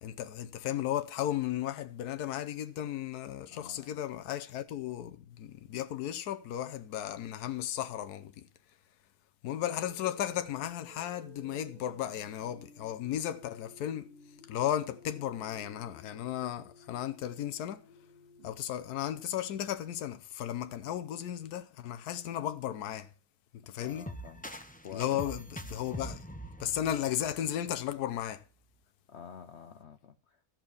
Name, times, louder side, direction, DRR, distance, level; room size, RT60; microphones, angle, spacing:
voice 1, 0.0-8.5 9.4-14.1 14.5-17.8 18.4-23.1 23.5-24.1 24.9-26.2 26.6-28.4, left 11 dB, 80° left, 1.2 m, -35 dB
voice 2, 3.5-4.1 23.8-25.2 29.1-30.5, left 7 dB, 55° left, 0.8 m, -49 dB
sound 1, 9.8-18.5, left 1 dB, 45° right, 2.6 m, -56 dB
sound 2, 23.9-27.8, equal, 10° left, 0.5 m, -44 dB
13.5 x 5.8 x 7.0 m
omnidirectional pair, 1.6 m